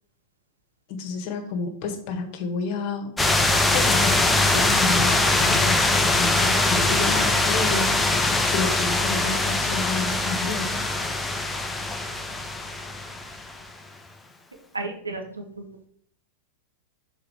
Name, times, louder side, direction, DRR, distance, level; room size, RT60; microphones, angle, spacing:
voice 1, 0.9-3.1 3.7-8.1 8.4-10.8, left 4 dB, 45° left, 5 dB, 1.6 m, -30 dB
sound 1, 3.2-13.6, left 2 dB, 10° left, 0.9 m, -22 dB
voice 2, 14.7-15.9, right 3 dB, 75° right, 3 dB, 1.5 m, -34 dB
6.7 x 4.4 x 6.2 m, 0.63 s
figure-of-eight pair, 90°, 0 cm